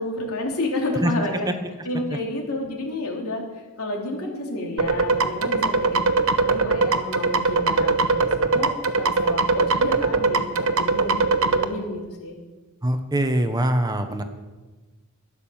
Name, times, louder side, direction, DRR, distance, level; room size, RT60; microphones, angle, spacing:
voice 1, 0.0-1.5 1.8-6.1 6.4-8.7 9.0-10.5 10.8-12.4, left 2 dB, 75° left, 0 dB, 3.3 m, -30 dB
sound 1, 4.8-11.6, right 3 dB, 65° right, 0.9 m, -21 dB
voice 2, 12.8-14.2, right 1 dB, 15° right, 8 dB, 0.9 m, -23 dB
13.5 x 11.0 x 7.2 m, 1.3 s
head